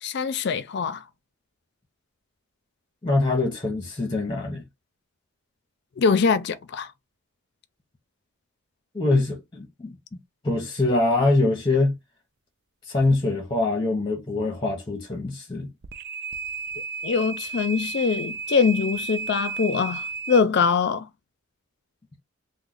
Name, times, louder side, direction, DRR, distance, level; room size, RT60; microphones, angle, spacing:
voice 1, 0.0-1.0 6.0-6.9 17.0-21.1, left 5 dB, 50° left, 0.4 m, -23 dB
voice 2, 3.0-4.6 8.9-10.2 10.4-11.9 12.9-15.7, left 2 dB, 20° left, 0.7 m, -24 dB
sound 1, 15.8-20.4, right 5 dB, 50° right, 0.3 m, -33 dB
3.0 x 2.0 x 3.7 m
head